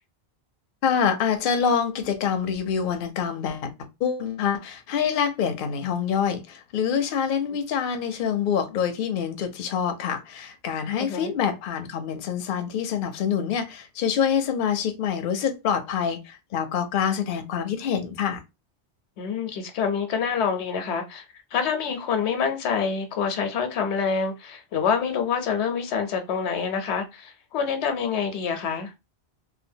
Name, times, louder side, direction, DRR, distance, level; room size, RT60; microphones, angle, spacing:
voice 1, 0.8-3.7 4.0-18.4, left 7 dB, 60° left, 0.7 m, -26 dB
voice 2, 11.0-11.3 19.2-21.2 21.5-28.9, left 6 dB, 90° left, 0.9 m, -26 dB
2.9 x 2.2 x 2.6 m
omnidirectional pair, 1.1 m